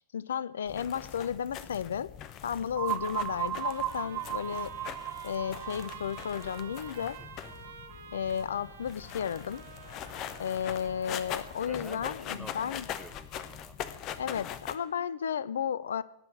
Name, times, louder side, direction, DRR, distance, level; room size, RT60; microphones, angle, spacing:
voice 1, 0.1-2.1 2.4-4.8 5.2-7.2 8.1-9.7 10.4-12.9 14.2-16.0, left 8 dB, 65° left, 19 dB, 0.5 m, -33 dB
sound 1, 0.7-14.8, left 10 dB, 35° left, 0.9 m, -42 dB
sound 2, 2.7-8.4, right 12 dB, 35° right, 0.4 m, -37 dB
Trumpet, 3.3-11.9, right 6 dB, 65° right, 1.2 m, -51 dB
voice 2, 7.2-7.5 8.5-8.7 11.7-13.8, right 2 dB, 5° right, 8 dB, 1.0 m, -49 dB
17.5 x 5.9 x 8.5 m, 0.81 s
figure-of-eight pair, 90°, 0 cm